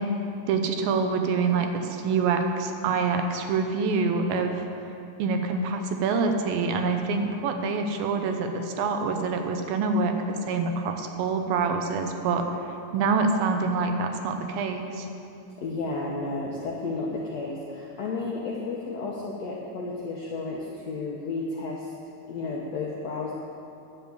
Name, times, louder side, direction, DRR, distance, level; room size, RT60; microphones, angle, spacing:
voice 1, 0.5-4.6 5.2-12.5 12.9-15.1, right 4 dB, 80° right, 5 dB, 2.5 m, -26 dB
voice 2, 15.6-21.9 22.3-23.3, left 3 dB, 75° left, -3 dB, 1.5 m, -32 dB
10.5 x 7.2 x 7.8 m, 2.7 s
omnidirectional pair, 4.3 m